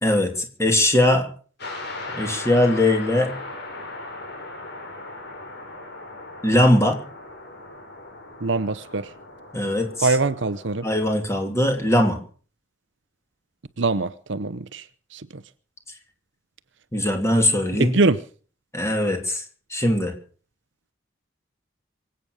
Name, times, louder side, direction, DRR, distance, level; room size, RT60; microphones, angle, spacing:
voice 1, 0.0-1.3 2.1-3.3 6.4-7.0 9.5-10.2 10.8-12.2 16.9-18.0 18.7-19.4 19.7-20.1, left 1 dB, 15° left, 2.8 m, -20 dB
sound 1, 1.6-11.0, left 2 dB, 50° left, 4.6 m, -38 dB
voice 2, 8.4-9.1 10.0-10.9 13.8-14.8 15.1-15.4 17.8-18.2, right 3 dB, 60° right, 0.8 m, -23 dB
24.0 x 8.9 x 6.4 m
head